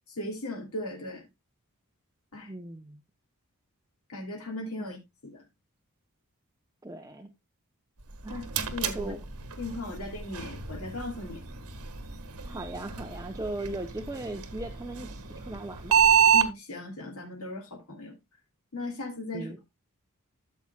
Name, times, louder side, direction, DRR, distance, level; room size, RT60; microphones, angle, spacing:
voice 1, 0.1-1.2 2.3-2.5 4.1-5.0 5.2-5.4 8.3-8.4 8.7-9.1 9.6-11.4 16.3-18.1 18.7-19.5, left 2 dB, 70° left, 2.8 m, -37 dB
voice 2, 2.4-3.0 4.8-4.9 6.8-7.3 8.2-8.5 8.9-9.2 12.4-16.0 19.3-19.6, right 2 dB, 15° right, 0.8 m, -38 dB
sound 1, 8.0-16.5, right 7 dB, 75° right, 1.5 m, -29 dB
13.5 x 7.2 x 2.3 m
head